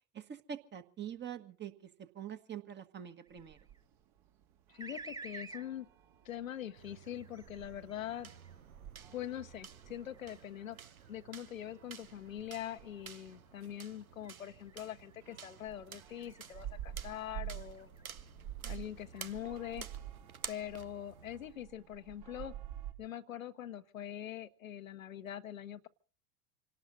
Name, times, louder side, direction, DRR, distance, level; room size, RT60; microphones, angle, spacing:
voice 1, 0.1-3.6, right 9 dB, 25° right, 9 dB, 1.6 m, -45 dB
sound 1, 3.0-3.8 4.8-5.7 6.7-8.6 9.2-12.5 13.0-13.4 14.2-15.2 15.9-16.6 17.1-18.0, right 3 dB, 10° right, 1.4 m, -53 dB
sound 2, 3.3-22.9, right 11 dB, 50° right, 2.5 m, -51 dB
voice 2, 4.7-5.9 6.2-8.3 9.1-10.8 11.1-17.9 18.6-19.9 20.5-22.5 23.0-25.9, left 11 dB, 70° left, 10 dB, 1.1 m, -43 dB
sound 3, 6.8-21.5, right 7 dB, 85° right, 0.8 m, -52 dB
26.5 x 18.0 x 2.7 m, 0.41 s
figure-of-eight pair, 75°, 42 cm